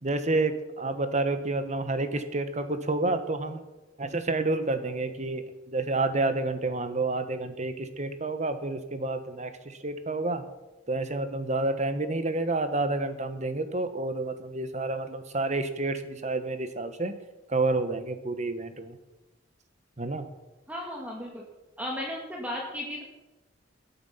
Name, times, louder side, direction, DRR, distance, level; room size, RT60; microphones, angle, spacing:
voice 1, 0.0-3.6 4.0-10.4 10.9-17.1 17.5-19.0 20.0-20.2, right 2 dB, 40° right, 9 dB, 1.2 m, -29 dB
voice 2, 20.7-21.4 21.8-23.0, left 1 dB, 10° right, -2 dB, 2.0 m, -35 dB
18.5 x 8.6 x 5.7 m, 1.0 s
head